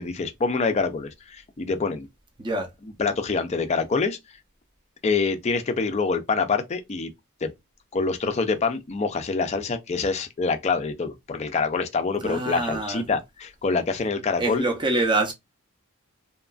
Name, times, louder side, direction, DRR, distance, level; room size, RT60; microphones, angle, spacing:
voice 1, 0.0-2.1 2.8-4.2 5.0-7.1 7.4-7.5 7.9-14.6, left 4 dB, 30° left, 0.4 m, -26 dB
voice 2, 12.2-13.0 14.4-15.3, right 2 dB, 20° right, 0.5 m, -25 dB
2.8 x 2.4 x 2.3 m
head